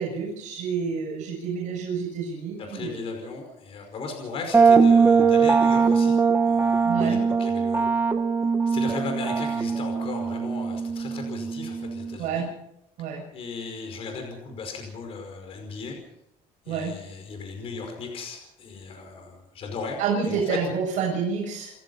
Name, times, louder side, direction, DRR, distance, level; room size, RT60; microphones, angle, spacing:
voice 1, 0.0-3.0 6.8-7.2 12.2-12.5 13.0-13.2 16.7-16.9 20.0-21.7, right 6 dB, 60° right, -3 dB, 7.1 m, -28 dB
voice 2, 2.7-7.9 8.7-12.5 13.3-16.0 16.6-20.0 20.3-20.6, left 4 dB, 40° left, 4 dB, 5.3 m, -36 dB
sound 1, 4.5-12.2, right 5 dB, 15° right, 1.3 m, -21 dB
29.0 x 16.5 x 5.7 m, 0.80 s
cardioid pair, 165°, 15 cm